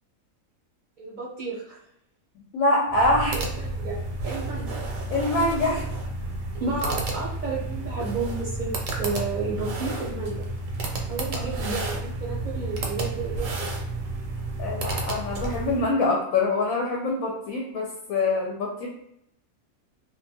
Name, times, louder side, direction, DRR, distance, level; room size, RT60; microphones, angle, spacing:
voice 1, 1.0-1.8 3.3-4.8 6.5-8.7 9.0-10.4 11.1-13.7, right 4 dB, 50° right, -5 dB, 0.6 m, -32 dB
voice 2, 2.5-3.4 5.1-5.8 14.6-18.9, left 2 dB, 90° left, -2 dB, 1.0 m, -24 dB
sound 1, 2.9-15.9, right 2 dB, 75° right, 0.9 m, -31 dB
2.4 x 2.2 x 2.7 m, 0.75 s
omnidirectional pair, 1.4 m